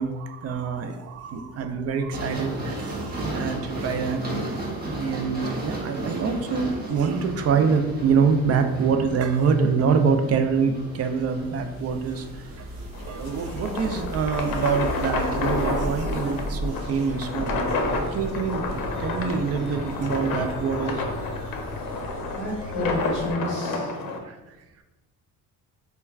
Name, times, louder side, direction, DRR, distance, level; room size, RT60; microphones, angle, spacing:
voice 1, 0.0-4.2 5.0-12.7 13.1-21.0 24.1-24.6, right 5 dB, 45° right, 7 dB, 0.4 m, -25 dB
sound 1, 2.1-22.0, right 1 dB, 25° right, 0.9 m, -37 dB
sound 2, 10.8-23.3, equal, 80° right, 0.9 m, -35 dB
sound 3, 12.9-24.2, left 3 dB, 70° left, 0.6 m, -30 dB
voice 2, 22.4-24.1, left 1 dB, 30° left, -5 dB, 0.8 m, -30 dB
4.4 x 2.2 x 2.3 m, 1.1 s
cardioid pair, 100°, 36 cm